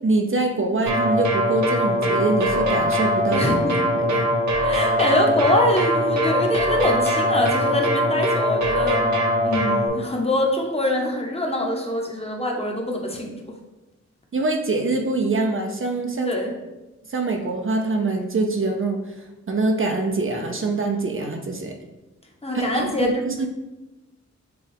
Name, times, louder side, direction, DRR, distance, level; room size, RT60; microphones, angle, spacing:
voice 1, 0.0-3.4 3.9-4.2 14.3-16.3 17.1-19.2 19.5-21.7 22.5-23.5, right 3 dB, 45° right, 3 dB, 0.5 m, -24 dB
sound 1, 0.9-9.9, equal, 75° right, 0.9 m, -21 dB
voice 2, 3.3-3.7 4.6-9.1 9.4-13.4 16.2-16.5 22.4-23.2, left 1 dB, 20° left, 0 dB, 0.8 m, -24 dB
6.8 x 2.3 x 3.3 m, 1.1 s
wide cardioid pair, 100°, 29 cm